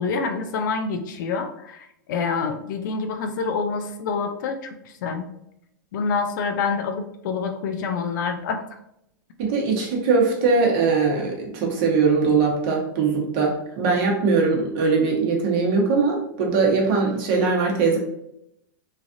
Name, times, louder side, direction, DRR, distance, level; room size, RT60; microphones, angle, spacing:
voice 1, 0.0-5.3 5.9-8.6, left 5 dB, 65° left, 6 dB, 0.4 m, -27 dB
voice 2, 9.4-18.0, right 4 dB, 45° right, -1 dB, 1.0 m, -21 dB
3.2 x 2.4 x 2.5 m, 0.80 s
hypercardioid pair, 135°, 11 cm